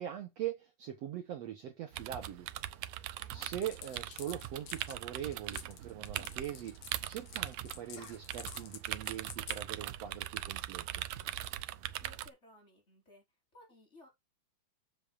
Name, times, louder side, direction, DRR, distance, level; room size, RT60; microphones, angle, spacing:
voice 1, 0.0-2.5 2.8-3.1 3.3-6.8 7.1-11.0, right 11 dB, 60° right, 2.0 m, -42 dB
sound 1, 1.9-12.3, right 14 dB, 80° right, 1.6 m, -41 dB
voice 2, 3.1-3.5 12.0-13.2 13.5-14.1, left 1 dB, 20° left, 4.7 m, -59 dB
sound 2, 3.4-9.6, left 8 dB, 65° left, 2.7 m, -49 dB
sound 3, 8.0-8.8 9.1-9.4, left 3 dB, 45° left, 4.2 m, -57 dB
10.0 x 7.4 x 2.6 m
omnidirectional pair, 3.8 m